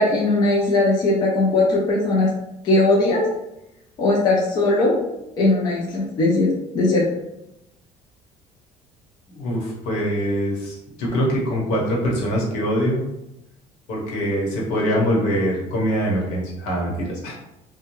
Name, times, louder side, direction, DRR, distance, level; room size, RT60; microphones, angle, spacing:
voice 1, 0.0-2.3 2.6-3.2 4.0-5.0 5.4-6.5 6.7-7.0, left 2 dB, 35° left, -4 dB, 0.5 m, -19 dB
voice 2, 9.3-13.0 13.9-17.3, equal, 80° left, -3 dB, 1.0 m, -23 dB
2.6 x 2.2 x 3.0 m, 0.89 s
cardioid pair, 180°, 12 cm